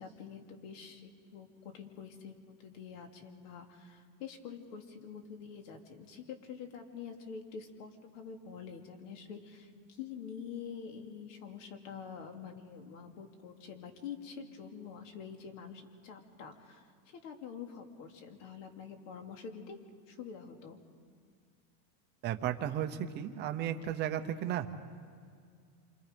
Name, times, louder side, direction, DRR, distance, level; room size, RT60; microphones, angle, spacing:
voice 1, 0.0-1.5 1.7-19.8 20.1-20.8, left 6 dB, 55° left, 4 dB, 2.8 m, -46 dB
voice 2, 22.2-24.7, right 10 dB, 25° right, 8 dB, 0.8 m, -34 dB
28.5 x 26.0 x 5.2 m, 2.1 s
supercardioid pair, 175°, 45 cm